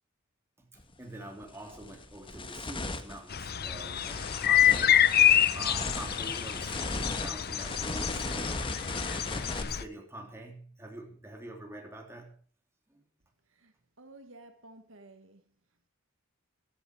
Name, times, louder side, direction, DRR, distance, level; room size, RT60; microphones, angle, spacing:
voice 1, 0.6-5.1 5.5-8.6 9.2-12.4 12.9-13.0, right 1 dB, 10° right, 3.4 m, -45 dB
sound 1, 0.8-0.9 1.4-9.6, left 3 dB, 25° left, 1.5 m, -38 dB
sound 2, 3.3-9.8, left 10 dB, 50° left, 0.8 m, -27 dB
voice 2, 13.5-15.4, right 2 dB, 70° right, 1.7 m, -53 dB
15.5 x 13.0 x 4.8 m
head